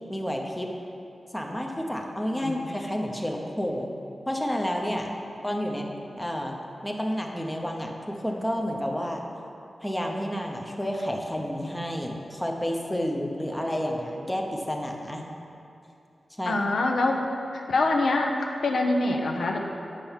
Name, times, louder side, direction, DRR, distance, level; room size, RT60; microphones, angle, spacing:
voice 1, 0.1-0.7 1.3-3.9 4.3-5.1 5.4-5.9 6.2-6.5 6.8-9.2 9.8-15.2 16.4-16.6, equal, 5° left, 1 dB, 0.7 m, -30 dB
voice 2, 2.4-2.7 13.4-13.5 16.5-17.2 17.5-19.6, left 2 dB, 75° left, 1 dB, 0.9 m, -25 dB
8.8 x 6.7 x 5.6 m, 2.7 s
wide cardioid pair, 175°, 0 cm